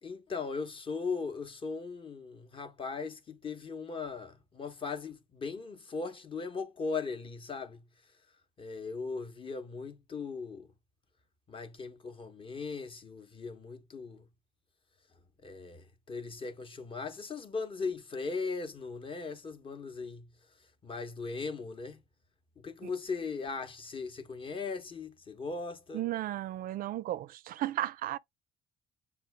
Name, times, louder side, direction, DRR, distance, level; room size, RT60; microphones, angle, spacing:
voice 1, 0.0-7.8 8.6-10.7 11.5-14.3 15.4-20.3 20.8-22.0 22.6-26.0, left 4 dB, 30° left, 0.9 m, -38 dB
voice 2, 25.9-28.2, right 14 dB, 55° right, 0.4 m, -34 dB
6.8 x 2.3 x 3.3 m
cardioid pair, 110°, 17 cm